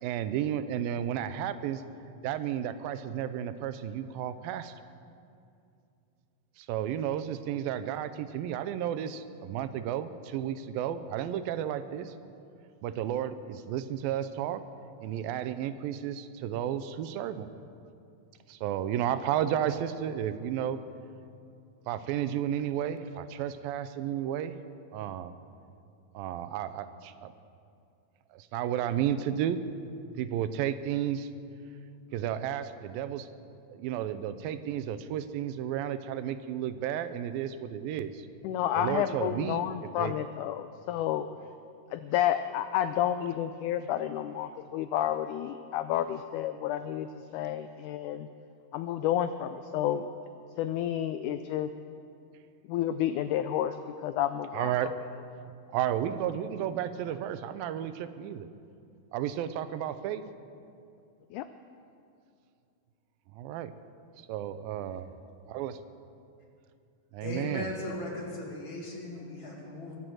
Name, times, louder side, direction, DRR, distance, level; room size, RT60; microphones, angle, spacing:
voice 1, 0.0-1.8 2.2-4.7 6.6-12.1 12.8-14.6 15.0-17.5 18.5-20.8 21.9-24.6 24.9-25.3 26.1-27.3 28.3-29.6 30.2-31.3 32.1-33.3 33.7-38.3 38.8-39.7 40.0-40.1 54.5-54.9 55.7-58.5 59.1-60.2 63.3-63.7 64.3-65.1 65.5-65.7 67.1-67.7, right 10 dB, 90° right, 11 dB, 2.5 m, -32 dB
voice 2, 38.4-41.3 41.9-48.3 48.7-50.1 50.6-51.7 52.7-55.0 61.3-61.5, left 11 dB, 85° left, 10 dB, 1.8 m, -30 dB
voice 3, 67.2-70.0, left 1 dB, 40° left, -2 dB, 2.7 m, -37 dB
23.0 x 7.9 x 7.6 m, 2.5 s
omnidirectional pair, 4.0 m